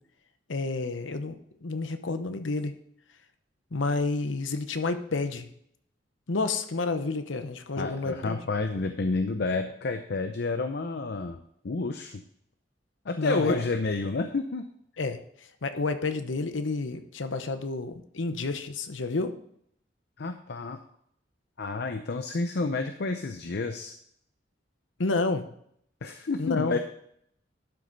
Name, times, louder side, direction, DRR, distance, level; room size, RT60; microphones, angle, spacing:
voice 1, 0.5-2.7 3.7-5.5 6.3-8.4 13.2-13.6 15.0-15.2 15.6-19.3 25.0-25.5 26.4-26.8, left 3 dB, 90° left, 9 dB, 0.9 m, -30 dB
voice 2, 7.8-11.4 11.6-12.2 13.1-14.7 20.2-20.8 21.6-23.9 26.0-26.8, left 3 dB, 60° left, 7 dB, 0.6 m, -30 dB
11.5 x 6.3 x 4.0 m, 0.69 s
head